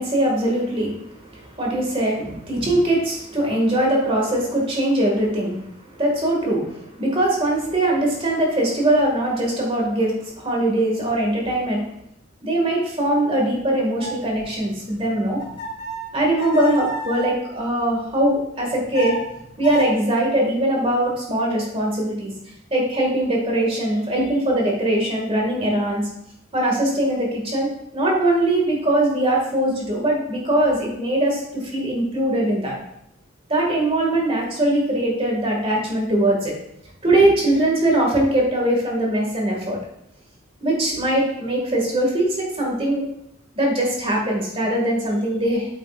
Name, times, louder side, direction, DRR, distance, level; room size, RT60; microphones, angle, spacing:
voice 1, 0.0-11.8 12.4-15.4 16.1-19.2 19.6-22.3 22.7-26.0 26.5-32.7 33.5-36.5 37.0-39.8 40.6-43.0 43.5-45.7, right 1 dB, 25° right, -1 dB, 2.0 m, -21 dB
sound 1, 14.0-17.4 18.6-19.9, equal, 30° left, 2.1 m, -33 dB
8.7 x 8.0 x 2.5 m, 0.79 s
head